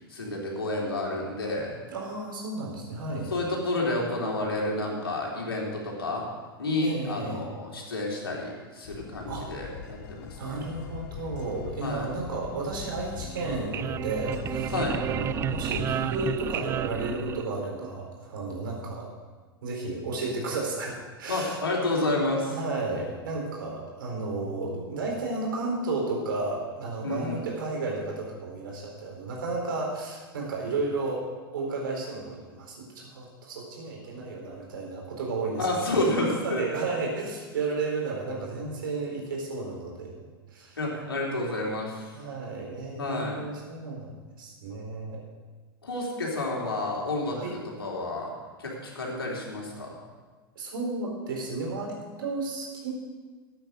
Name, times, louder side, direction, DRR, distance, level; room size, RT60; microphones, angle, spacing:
voice 1, 0.1-1.8 3.3-6.2 6.6-10.6 11.8-12.1 14.7-15.0 21.3-22.6 27.0-27.4 35.6-36.6 40.8-42.1 43.0-43.4 45.8-48.3 48.6-50.0, left 2 dB, 75° left, -2 dB, 3.6 m, -30 dB
voice 2, 1.9-3.3 6.8-7.4 9.3-9.5 10.4-14.7 15.0-19.1 19.6-21.6 22.4-31.3 31.5-40.1 40.5-40.8 42.1-45.2 47.3-47.5 50.5-52.9, right 3 dB, 60° right, -1 dB, 4.4 m, -33 dB
sound 1, 8.8-15.9, left 9 dB, 50° left, 0.8 m, -41 dB
sound 2, 13.2-17.9, right 10 dB, 20° right, 0.3 m, -32 dB
13.5 x 9.1 x 6.4 m, 1.4 s
figure-of-eight pair, 95°, 12 cm